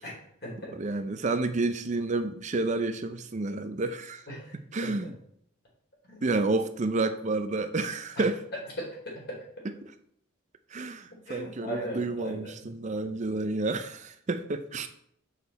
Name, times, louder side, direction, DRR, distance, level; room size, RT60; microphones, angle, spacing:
voice 1, 0.0-0.7 4.3-4.6 4.8-4.9 6.1-6.2 8.2-8.3 8.8-9.4 11.3-12.5, equal, 55° left, 3.8 m, -38 dB
voice 2, 0.7-4.2 4.5-5.2 6.2-8.4 9.6-9.9 10.7-14.9, right 3 dB, 35° right, 0.5 m, -30 dB
7.4 x 6.5 x 4.1 m
head